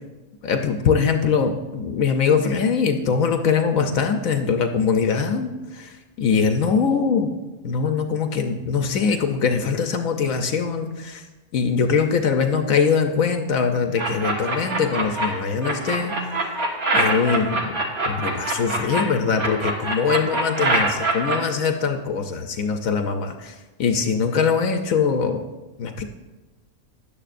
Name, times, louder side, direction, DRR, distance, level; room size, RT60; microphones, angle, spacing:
voice 1, 0.4-7.3 7.6-11.2 11.5-16.1 16.9-17.8 18.1-25.4 25.8-26.0, left 5 dB, 70° left, 5 dB, 1.1 m, -22 dB
sound 1, 14.0-15.3 15.6-19.0 19.4-21.4, right 2 dB, 85° right, 2.0 m, -23 dB
15.5 x 10.5 x 2.5 m, 1.2 s
omnidirectional pair, 1.5 m